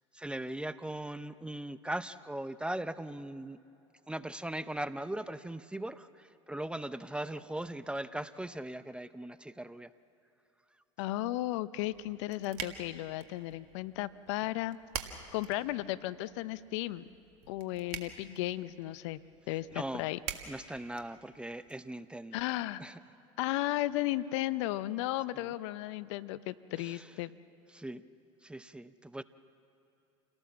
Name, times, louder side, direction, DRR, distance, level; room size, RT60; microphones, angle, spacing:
voice 1, 0.1-3.6 4.1-9.9 19.7-20.1 20.5-22.4 22.8-23.0 25.4-25.5 26.8-27.1 27.7-28.1 28.4-29.2, right 1 dB, 5° right, 14 dB, 0.6 m, -39 dB
voice 2, 11.0-14.8 15.3-17.0 17.5-19.2 19.5-20.2 22.3-22.8 23.4-27.3, left 16 dB, 70° left, 16 dB, 0.6 m, -34 dB
sound 1, 11.8-21.7, right 9 dB, 65° right, 1.8 m, -47 dB
28.0 x 18.0 x 7.4 m, 2.8 s
hypercardioid pair, 85°, 16 cm